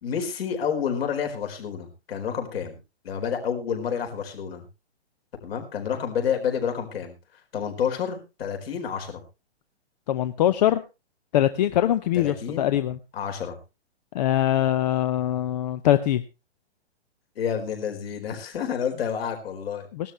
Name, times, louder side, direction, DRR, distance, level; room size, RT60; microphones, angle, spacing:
voice 1, 0.0-2.8 3.0-4.7 5.4-7.1 7.5-9.2 12.1-12.7 13.1-13.6 17.4-19.9, left 7 dB, 60° left, 4 dB, 4.6 m, -29 dB
voice 2, 10.1-10.8 11.3-13.0 14.1-16.2 19.9-20.1, left 12 dB, 40° left, 13 dB, 0.7 m, -22 dB
18.0 x 12.5 x 3.3 m, 0.28 s
hypercardioid pair, 140°, 34 cm